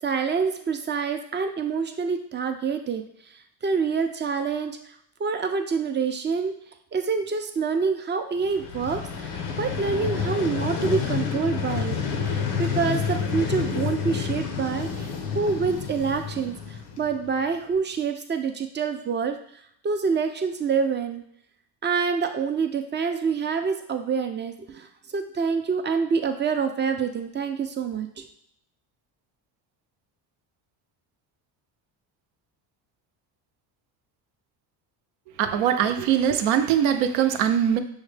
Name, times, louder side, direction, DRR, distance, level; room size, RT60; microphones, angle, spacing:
voice 1, 0.0-3.0 3.6-4.8 5.2-6.5 6.9-12.0 12.2-15.1 15.3-16.5 17.0-19.4 19.8-21.2 21.8-24.9 25.1-28.3, right 5 dB, 25° right, 6 dB, 0.3 m, -26 dB
Vehicle, 8.4-17.4, left 6 dB, 90° left, 0.8 m, -29 dB
voice 2, 35.4-37.8, right 9 dB, 85° right, 8 dB, 0.6 m, -22 dB
6.3 x 2.1 x 3.2 m, 0.69 s
cardioid pair, 100°, 47 cm